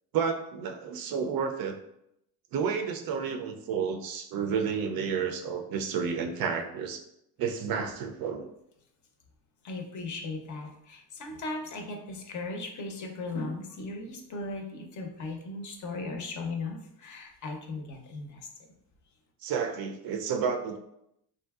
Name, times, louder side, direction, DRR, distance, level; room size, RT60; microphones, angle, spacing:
voice 1, 0.1-1.8 2.5-7.0 7.4-8.5 19.4-20.8, right 6 dB, 55° right, 5 dB, 0.5 m, -31 dB
voice 2, 9.6-18.5, left 3 dB, 45° left, 3 dB, 0.6 m, -37 dB
3.4 x 2.6 x 2.3 m, 0.79 s
cardioid pair, 110°, 43 cm